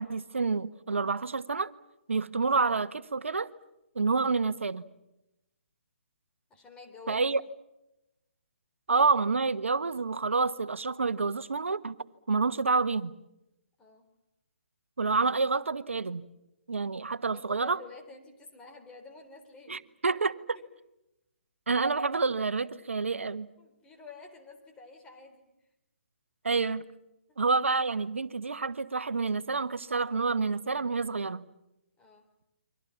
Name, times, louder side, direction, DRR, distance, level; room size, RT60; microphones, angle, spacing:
voice 1, 0.0-1.7 2.1-3.5 3.9-4.8 7.1-7.4 8.9-12.0 12.3-13.1 15.0-16.2 16.7-17.8 19.7-20.6 21.7-23.5 26.4-26.8 27.4-31.4, right 4 dB, 80° right, 1.3 m, -28 dB
voice 2, 6.5-7.2 13.8-14.1 17.3-19.8 20.5-20.6 23.6-25.5 27.3-27.4 32.0-32.3, left 4 dB, 15° left, 3.7 m, -50 dB
29.5 x 24.0 x 7.2 m
figure-of-eight pair, 140°, 7 cm